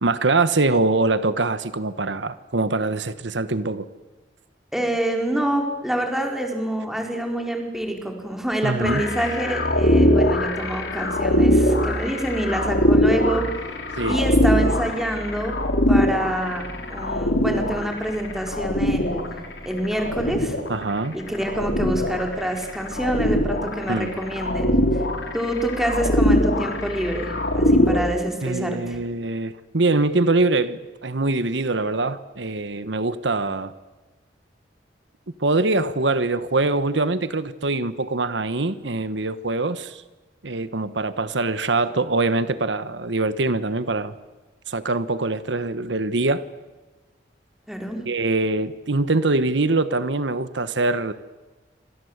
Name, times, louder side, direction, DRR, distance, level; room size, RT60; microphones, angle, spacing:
voice 1, 0.0-3.9 8.6-9.0 14.0-14.2 20.7-21.2 23.9-24.1 28.4-33.7 35.4-40.0 40.4-44.1 44.7-46.4 48.1-51.1, right 2 dB, 80° right, 13 dB, 1.2 m, -23 dB
voice 2, 4.7-13.5 14.0-15.5 15.9-16.6 16.9-19.3 19.6-20.6 21.1-24.7 25.3-29.0 47.7-48.0, right 1 dB, ahead, 2 dB, 4.6 m, -26 dB
sound 1, 8.8-28.0, left 1 dB, 75° left, 4.9 m, -22 dB
28.0 x 26.0 x 8.1 m, 1.2 s
head